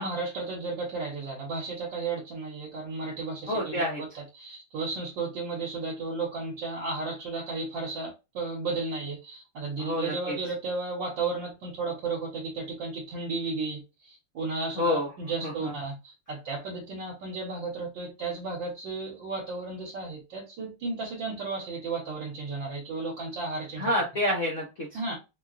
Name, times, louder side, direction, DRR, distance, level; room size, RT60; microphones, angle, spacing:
voice 1, 0.0-3.8 4.1-23.8 24.9-25.2, right 3 dB, 65° right, 1.7 m, -34 dB
voice 2, 3.5-4.0 9.8-10.4 14.8-15.1 15.4-15.7 23.8-24.9, left 1 dB, 65° left, 0.7 m, -28 dB
4.6 x 2.3 x 2.5 m
omnidirectional pair, 2.4 m